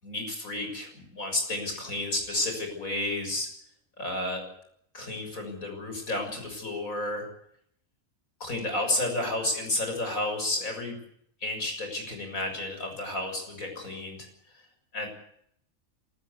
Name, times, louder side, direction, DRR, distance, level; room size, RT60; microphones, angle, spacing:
voice 1, 0.0-3.5 4.0-4.5 4.9-7.3 8.4-11.0 11.4-14.3 14.9-15.1, left 2 dB, 80° left, 4 dB, 7.2 m, -31 dB
27.0 x 14.0 x 8.4 m, 0.70 s
omnidirectional pair, 1.4 m